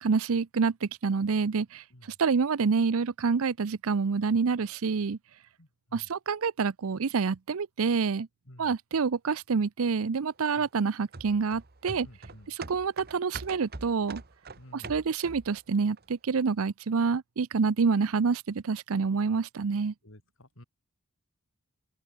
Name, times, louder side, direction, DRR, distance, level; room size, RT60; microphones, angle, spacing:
voice 1, 0.0-1.8 2.2-5.2 5.9-8.3 8.6-12.1 12.5-14.2 14.7-19.9, right 5 dB, 70° right, 0.5 m, -27 dB
voice 2, 5.6-6.1 8.5-8.7 10.5-10.7 12.0-12.5 14.6-15.0 20.0-20.6, left 1 dB, 60° left, 4.3 m, -53 dB
sound 1, 11.1-15.6 16.0-16.1, right 4 dB, 45° right, 1.4 m, -43 dB
open air
head